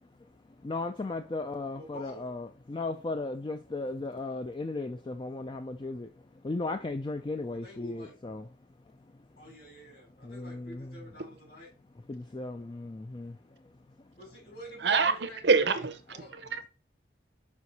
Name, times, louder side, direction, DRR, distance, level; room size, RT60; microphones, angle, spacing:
voice 1, 0.6-6.1 6.4-8.4 10.2-11.0 12.1-13.4, left 2 dB, 25° left, 0.3 m, -36 dB
voice 2, 1.8-2.2 7.6-8.2 9.4-11.7 14.2-16.3, equal, 55° left, 3.7 m, -49 dB
voice 3, 14.8-15.9 16.5-16.7, right 4 dB, 70° right, 0.7 m, -25 dB
6.2 x 4.8 x 4.1 m
head